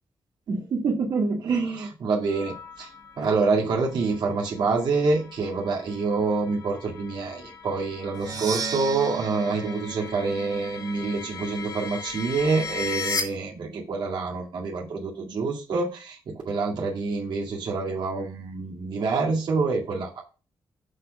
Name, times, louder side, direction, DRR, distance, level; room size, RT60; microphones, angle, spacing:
voice 1, 0.5-2.9 3.2-20.2, right 4 dB, 65° right, -2 dB, 2.2 m, -27 dB
sound 1, 2.3-13.2, left 4 dB, 40° left, 1.6 m, -38 dB
Percussion, 8.1-11.9, right 5 dB, 50° right, 1.2 m, -36 dB
7.8 x 4.2 x 6.1 m, 0.33 s
wide cardioid pair, 150°, 8 cm